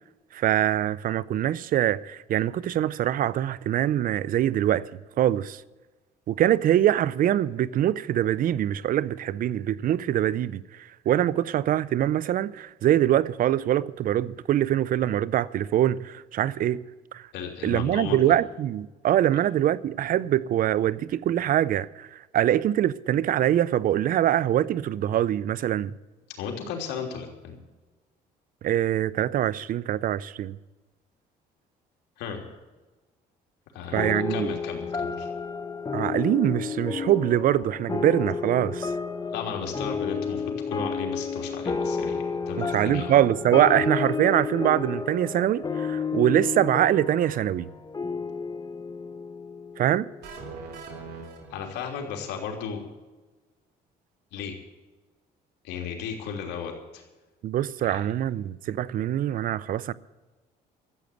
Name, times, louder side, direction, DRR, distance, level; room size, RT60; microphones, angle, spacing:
voice 1, 0.3-4.9 5.2-5.6 6.3-16.8 17.1-17.3 17.6-25.9 28.6-30.6 33.9-34.6 35.9-38.9 42.6-47.7 49.8-50.1 57.4-59.9, right 11 dB, 55° right, 0.6 m, -24 dB
voice 2, 17.3-18.4 26.4-27.6 32.2-32.4 33.7-35.3 39.3-43.1 51.5-52.8 54.3-54.5 55.6-57.0 57.9-58.0 58.8-58.9, left 7 dB, 85° left, 3.3 m, -35 dB
sound 1, 34.0-50.8, left 5 dB, 25° left, 1.0 m, -31 dB
sound 2, 50.2-52.2, right 4 dB, 70° right, 3.5 m, -42 dB
13.5 x 8.3 x 9.2 m
cardioid pair, 110°, 17 cm